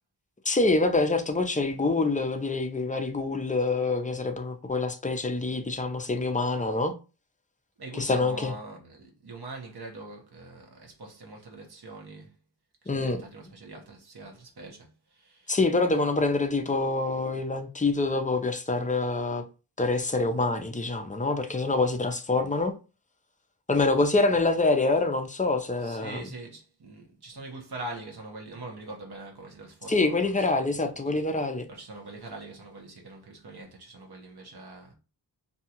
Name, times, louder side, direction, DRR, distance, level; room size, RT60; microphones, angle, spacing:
voice 1, 0.4-6.9 7.9-8.5 12.9-13.2 15.5-19.5 19.8-22.7 23.7-26.2 29.9-31.7, left 3 dB, 20° left, 0.4 m, -26 dB
voice 2, 7.8-12.4 12.8-15.6 25.8-30.7 31.7-34.9, right 2 dB, 65° right, 0.9 m, -43 dB
2.7 x 2.3 x 2.7 m
wide cardioid pair, 70°, 42 cm